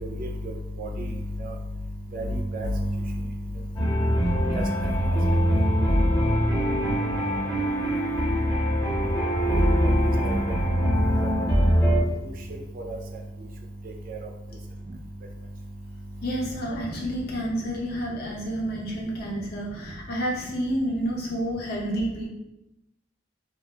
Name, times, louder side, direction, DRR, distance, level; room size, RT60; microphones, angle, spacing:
voice 1, 0.0-0.5 0.8-1.1 1.4-1.5 2.1-2.9 4.5-4.6 9.4-9.5 10.2-10.4 11.2-11.3 12.9-13.0 14.1-14.2, equal, 50° right, 2 dB, 0.4 m, -30 dB
sound 1, 3.7-12.0, equal, 20° left, 0.8 m, -23 dB
voice 2, 16.2-22.3, equal, 55° left, -2 dB, 0.6 m, -29 dB
2.3 x 2.1 x 2.7 m, 0.88 s
head